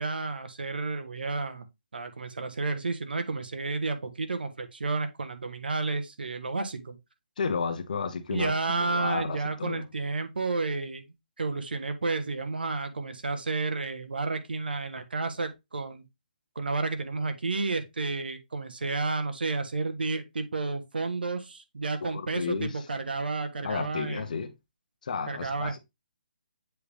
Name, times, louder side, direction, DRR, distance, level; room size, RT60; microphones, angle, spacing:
voice 1, 0.0-1.7 1.9-7.0 8.3-11.0 11.4-16.0 16.5-24.3 25.3-25.8, right 3 dB, 85° right, 1.3 m, -31 dB
voice 2, 7.4-9.9 22.0-22.9 23.6-24.5 25.0-25.8, left 5 dB, 55° left, 1.3 m, -32 dB
7.8 x 3.5 x 3.4 m
hypercardioid pair, 160°, 5 cm